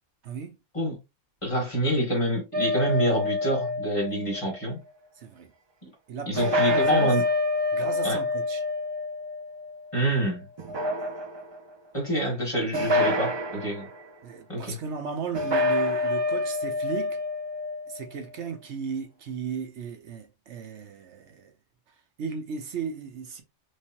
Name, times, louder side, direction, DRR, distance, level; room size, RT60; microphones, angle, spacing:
voice 1, 0.2-0.5 5.2-5.5 6.1-7.2 7.7-8.6 14.2-17.2 17.9-21.5 22.2-23.4, right 6 dB, 75° right, 1.0 m, -35 dB
voice 2, 1.4-4.8 5.8-5.9 6.3-7.2 8.0-8.2 9.9-10.4 11.9-13.9 14.5-14.8, right 1 dB, 25° left, 1.7 m, -27 dB
sound 1, 2.5-4.6 6.4-10.1 10.6-11.6 12.7-13.9 15.3-18.1, left 2 dB, 45° right, 0.3 m, -27 dB
3.2 x 3.2 x 2.8 m
omnidirectional pair, 1.2 m